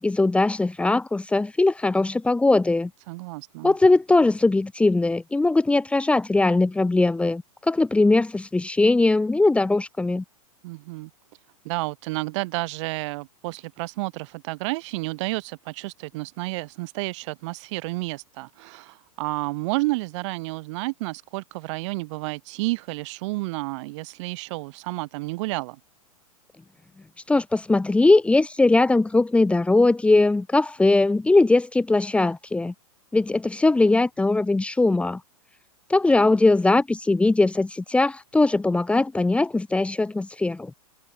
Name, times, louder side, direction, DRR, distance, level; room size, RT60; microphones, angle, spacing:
voice 1, 0.0-2.9 3.6-10.2 27.3-32.7 33.1-35.2 35.9-40.7, left 2 dB, 5° left, 2.2 m, -20 dB
voice 2, 3.1-3.7 10.6-11.1 11.6-25.8, right 23 dB, 50° right, 6.1 m, -31 dB
hypercardioid pair, 135°, 19 cm